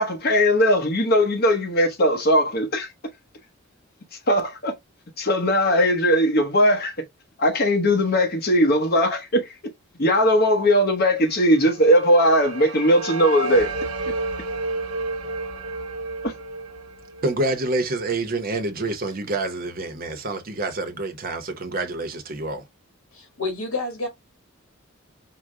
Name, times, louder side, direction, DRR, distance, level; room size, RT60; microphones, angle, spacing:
voice 1, 0.0-2.9 4.3-4.7 5.2-6.9 7.4-9.5 10.0-13.7 16.2-16.3, equal, 50° left, 1.0 m, -19 dB
sound 1, 11.3-18.3, right 3 dB, 85° right, 0.7 m, -31 dB
voice 2, 17.2-22.6, right 2 dB, 45° right, 0.8 m, -27 dB
voice 3, 23.1-24.1, left 3 dB, 70° left, 1.6 m, -29 dB
4.8 x 2.1 x 3.6 m
head